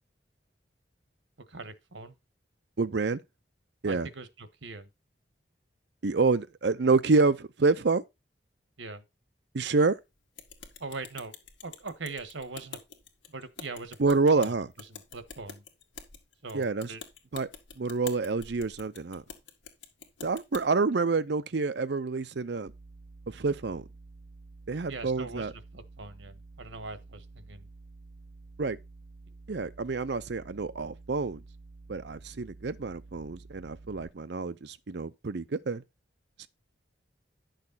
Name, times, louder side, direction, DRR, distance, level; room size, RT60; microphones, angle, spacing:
voice 1, 1.5-2.2 3.8-4.9 8.8-9.0 10.8-11.3 11.6-12.8 13.3-15.6 16.4-17.0 24.9-27.7 29.3-29.4, right 3 dB, 80° right, 1.4 m, -41 dB
voice 2, 2.8-3.2 3.8-4.1 6.0-8.0 9.5-10.0 14.0-14.7 16.5-16.9 17.3-17.5 17.8-19.2 20.2-22.7 23.3-23.8 24.7-25.5 28.6-28.8 29.5-31.4 31.9-35.8, right 3 dB, 60° right, 0.5 m, -27 dB
sound 1, 10.4-20.6, left 5 dB, 75° left, 1.9 m, -47 dB
sound 2, 22.7-34.1, right 3 dB, 40° right, 0.8 m, -50 dB
10.5 x 6.5 x 4.0 m
head